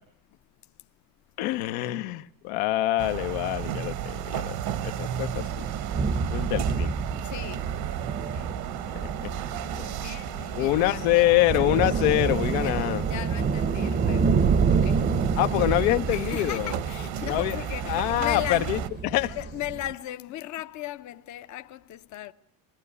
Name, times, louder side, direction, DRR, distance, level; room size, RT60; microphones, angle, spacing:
voice 1, 1.4-4.6 4.8-5.7 6.3-6.9 8.9-9.3 10.5-13.0 15.4-16.7 17.2-17.6 17.8-19.4, left 16 dB, 75° left, 1.1 m, -25 dB
sound 1, 3.0-18.9, right 10 dB, 55° right, 1.2 m, -34 dB
sound 2, 5.3-19.9, right 5 dB, 25° right, 0.8 m, -28 dB
voice 2, 7.2-7.7 8.3-8.5 9.7-11.3 12.6-14.3 14.7-15.1 16.1-18.7 19.4-22.3, left 14 dB, 40° left, 0.8 m, -37 dB
20.0 x 17.5 x 9.7 m
supercardioid pair, 110°, 44 cm